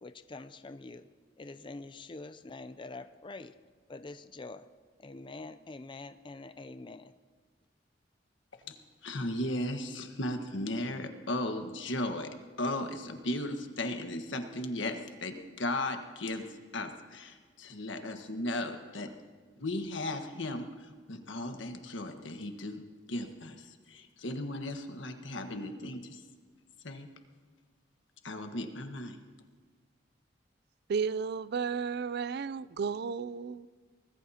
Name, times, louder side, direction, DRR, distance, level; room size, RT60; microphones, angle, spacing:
voice 1, 0.0-1.1 1.4-3.5 3.9-4.7 5.0-7.1, left 3 dB, 25° left, 11 dB, 0.5 m, -45 dB
voice 2, 9.0-19.1 19.6-22.8 23.1-26.2 26.8-27.1 28.2-29.2, left 1 dB, 85° left, 6 dB, 1.4 m, -36 dB
voice 3, 30.9-33.7, right 6 dB, 60° right, 18 dB, 0.4 m, -33 dB
24.0 x 19.0 x 2.9 m, 1.5 s
head